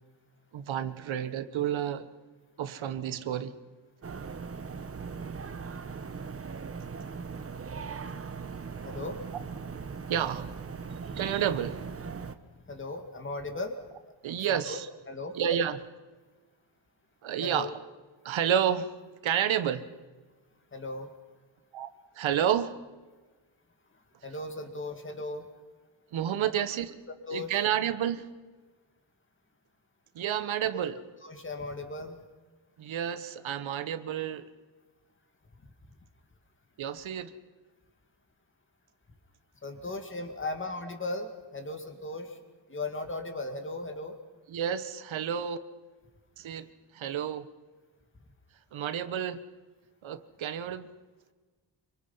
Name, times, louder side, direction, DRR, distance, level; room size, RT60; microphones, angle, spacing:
voice 1, 0.5-2.1 2.6-3.6 10.1-10.5 11.1-11.8 14.2-14.9 15.3-15.9 17.2-17.7 18.2-18.9 19.2-19.9 21.7-21.9 22.2-22.8 26.1-27.0 27.3-28.3 30.1-31.0 32.8-34.4 36.8-37.3 44.5-45.6 46.4-47.5 48.7-49.4 50.0-50.9, right 9 dB, 80° right, 12 dB, 1.3 m, -30 dB
sound 1, 4.0-12.3, right 5 dB, 30° right, 1.0 m, -39 dB
voice 2, 8.9-9.2 12.7-13.8 14.5-14.8 15.1-15.4 17.4-17.7 20.7-21.1 24.2-25.5 26.6-26.7 27.3-27.5 30.7-30.8 31.2-32.2 39.6-42.4 42.7-44.2, left 2 dB, 25° left, 6 dB, 2.3 m, -37 dB
26.0 x 24.5 x 5.6 m, 1.3 s
wide cardioid pair, 145°, 46 cm